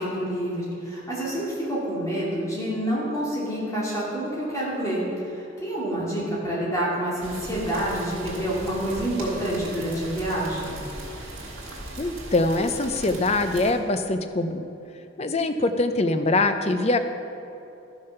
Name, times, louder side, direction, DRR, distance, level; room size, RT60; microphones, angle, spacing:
voice 1, 0.0-5.0 5.6-10.7, right 1 dB, 15° left, -7 dB, 2.6 m, -28 dB
sound 1, 7.2-13.7, right 1 dB, 80° right, 2.6 m, -38 dB
voice 2, 12.0-14.7 15.2-17.0, left 2 dB, 30° left, 8 dB, 0.5 m, -23 dB
12.5 x 6.4 x 5.8 m, 2.9 s
head